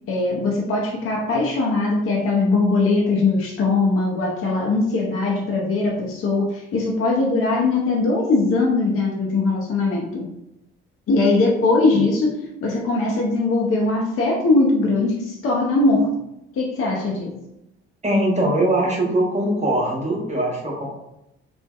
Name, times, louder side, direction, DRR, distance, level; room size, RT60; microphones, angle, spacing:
voice 1, 0.1-10.3 11.1-16.2 16.5-17.4, left 3 dB, 45° left, -1 dB, 0.5 m, -20 dB
voice 2, 18.0-20.9, right 1 dB, 25° right, -2 dB, 1.0 m, -21 dB
2.5 x 2.1 x 2.2 m, 0.86 s
hypercardioid pair, 40°, 30 cm